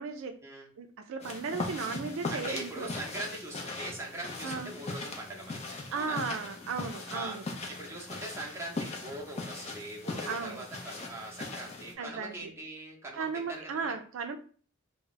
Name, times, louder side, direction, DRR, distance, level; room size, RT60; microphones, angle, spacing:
voice 1, 0.0-0.4 0.8-2.9 4.4-4.8 5.7-7.4 10.2-10.7 12.0-12.5 13.2-14.4, right 5 dB, 75° right, 6 dB, 0.3 m, -36 dB
sound 1, 1.2-11.9, left 3 dB, 30° left, 0.5 m, -40 dB
voice 2, 2.3-6.2 7.1-7.4 7.7-13.9, right 1 dB, 15° right, -2 dB, 0.7 m, -41 dB
2.2 x 2.0 x 3.8 m, 0.42 s
head